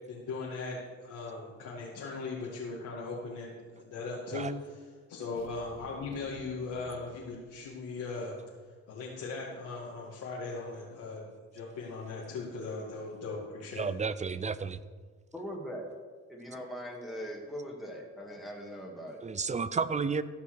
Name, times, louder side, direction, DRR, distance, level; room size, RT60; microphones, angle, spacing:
voice 1, 0.1-8.4 8.7-11.3 11.5-13.9, left 3 dB, 80° left, -6 dB, 2.3 m, -39 dB
sound 1, 5.4-8.1, left 6 dB, 60° left, 1.2 m, -54 dB
voice 2, 13.8-14.8 19.2-20.2, right 5 dB, 25° right, 15 dB, 0.5 m, -31 dB
voice 3, 15.3-15.9 16.3-19.2, equal, ahead, -1 dB, 2.3 m, -41 dB
14.5 x 5.7 x 6.4 m, 1.5 s
cardioid pair, 90°, 30 cm